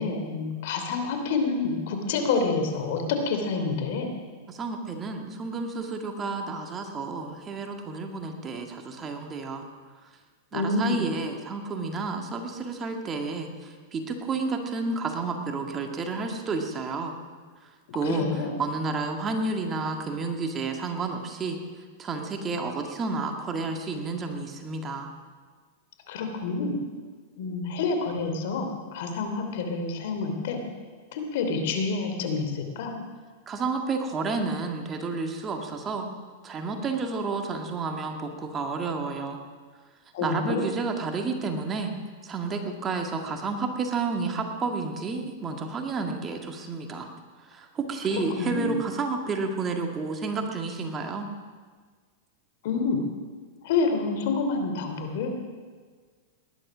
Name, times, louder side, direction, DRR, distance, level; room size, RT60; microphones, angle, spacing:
voice 1, 0.0-4.1 10.5-11.0 18.0-18.5 26.1-26.7 27.4-30.6 31.1-32.9 40.1-40.6 48.1-48.7 52.6-53.0 53.6-55.3, left 4 dB, 65° left, 5 dB, 2.9 m, -28 dB
voice 2, 4.5-9.6 10.5-17.1 17.9-18.3 18.6-21.6 22.0-25.1 33.5-36.1 36.4-39.4 40.2-41.9 42.2-47.1 47.4-51.3, right 4 dB, 25° right, 4 dB, 1.9 m, -31 dB
19.5 x 11.0 x 6.2 m, 1.6 s
hypercardioid pair, 130°, 0 cm